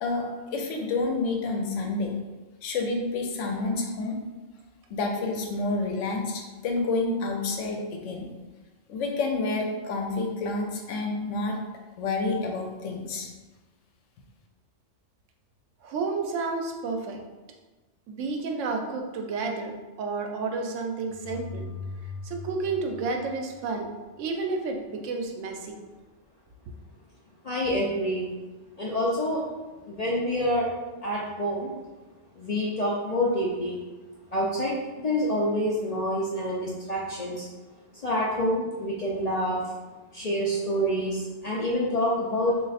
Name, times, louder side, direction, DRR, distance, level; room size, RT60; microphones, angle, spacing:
voice 1, 0.0-2.2 2.6-4.2 4.9-8.3 8.9-11.6 12.0-13.3, left 3 dB, 80° left, 2 dB, 0.9 m, -29 dB
voice 2, 15.8-17.2 18.1-21.7 22.2-23.9 24.2-25.7, right 4 dB, 85° right, 3 dB, 0.9 m, -31 dB
sound 1, 21.1-24.0, left 3 dB, 25° left, 0.8 m, -40 dB
voice 3, 27.4-28.3 28.8-29.4 29.8-30.7 31.0-31.7 32.4-33.8 34.3-37.5 37.9-39.6 40.1-42.5, equal, 55° left, -5 dB, 0.4 m, -27 dB
3.1 x 2.4 x 4.0 m, 1.2 s
omnidirectional pair, 1.3 m